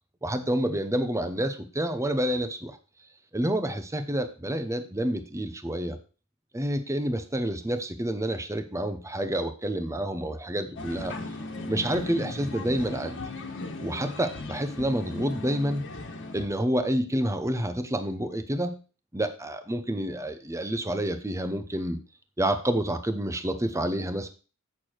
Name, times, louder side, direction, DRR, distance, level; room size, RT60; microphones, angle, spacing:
voice 1, 0.2-2.8 3.3-6.0 6.5-11.2 11.7-13.2 13.8-15.8 16.3-18.8 19.1-22.0 22.4-24.3, right 1 dB, 15° right, 9 dB, 0.9 m, -28 dB
sound 1, 10.8-16.5, left 2 dB, 60° left, 1.5 m, -37 dB
8.3 x 6.6 x 4.5 m, 0.35 s
head